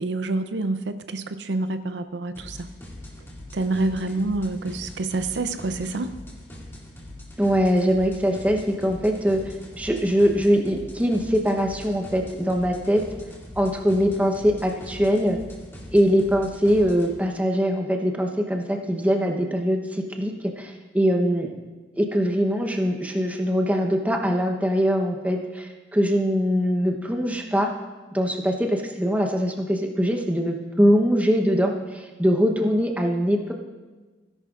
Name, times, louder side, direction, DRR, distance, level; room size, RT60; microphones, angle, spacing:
voice 1, 0.0-2.6 3.5-6.1, right 2 dB, 75° right, 10 dB, 0.6 m, -27 dB
sound 1, 2.3-17.1, left 1 dB, 15° left, 2.3 m, -42 dB
voice 2, 7.4-13.0 13.6-15.4 15.9-21.5 22.0-27.7 28.1-33.5, equal, 10° right, 3 dB, 0.9 m, -22 dB
17.0 x 11.0 x 2.5 m, 1.3 s
head